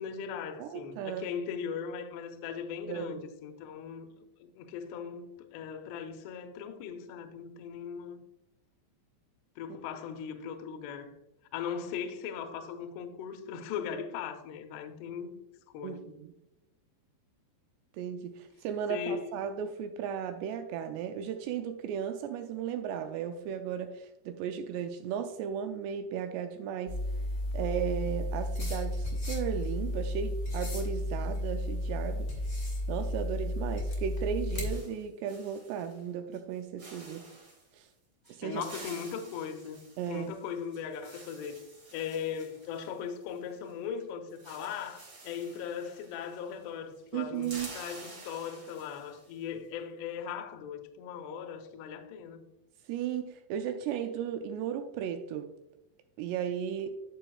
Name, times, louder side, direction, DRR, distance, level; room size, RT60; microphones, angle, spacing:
voice 1, 0.0-4.1 4.4-8.2 9.6-11.1 11.5-15.4 15.7-16.1 18.9-19.2 38.4-39.8 40.1-41.6 41.9-52.5, left 7 dB, 75° left, 2.7 m, -39 dB
voice 2, 0.6-1.3 2.9-3.2 15.8-16.3 17.9-27.0 27.5-32.3 32.9-37.3 37.7-37.9 38.3-38.6 40.0-40.3 47.1-47.7 52.9-55.5 56.2-57.0, right 8 dB, 85° right, 2.4 m, -35 dB
sound 1, 26.9-34.8, left 1 dB, 35° left, 1.4 m, -33 dB
sound 2, 34.1-36.0 36.3-36.5 36.8-37.7 38.2-43.7 44.0-44.1 44.3-46.7 46.9-49.4, right 2 dB, 45° right, 1.1 m, -50 dB
11.0 x 6.8 x 2.3 m
omnidirectional pair, 5.3 m